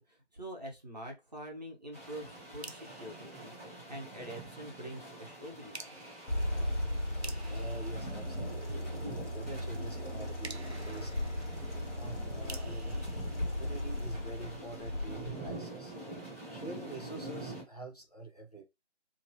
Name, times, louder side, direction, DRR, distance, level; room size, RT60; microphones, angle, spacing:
voice 1, 0.1-6.0, right 1 dB, 35° right, 0.9 m, -45 dB
sound 1, 1.9-17.6, right 2 dB, 15° left, 1.1 m, -46 dB
sound 2, 2.6-4.3 5.7-9.1 10.4-14.3, right 3 dB, 65° right, 0.6 m, -52 dB
sound 3, 6.3-15.6, left 1 dB, 75° left, 1.3 m, -37 dB
voice 2, 7.5-8.9 9.3-11.1 11.9-13.0 13.5-15.9 16.5-18.6, right 3 dB, 35° left, 0.8 m, -46 dB
2.8 x 2.8 x 2.7 m
figure-of-eight pair, 165°, 35 cm